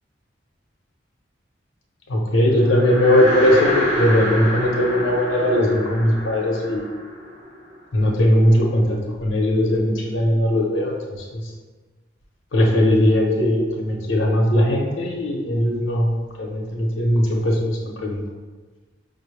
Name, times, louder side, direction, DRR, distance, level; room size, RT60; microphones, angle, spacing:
voice 1, 2.1-6.8 7.9-11.0 11.3-11.4 12.5-18.2, left 1 dB, 85° left, 0 dB, 0.8 m, -19 dB
sound 1, 2.5-8.0, equal, 45° right, 1.4 m, -27 dB
5.4 x 2.1 x 3.2 m, 1.4 s
head